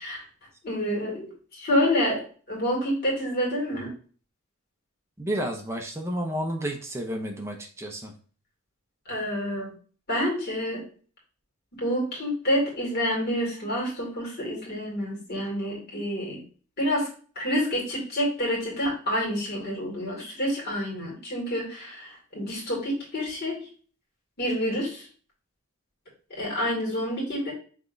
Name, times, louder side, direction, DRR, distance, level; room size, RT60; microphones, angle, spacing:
voice 1, 0.6-1.3 1.5-2.2 2.5-3.9 9.1-9.7 10.1-10.8 11.8-16.4 16.8-17.1 17.4-23.6 24.4-25.1 26.3-27.5, equal, 45° left, -2 dB, 2.2 m, -28 dB
voice 2, 5.2-8.1, equal, 10° right, 2 dB, 0.7 m, -31 dB
5.9 x 3.5 x 2.6 m, 0.41 s
head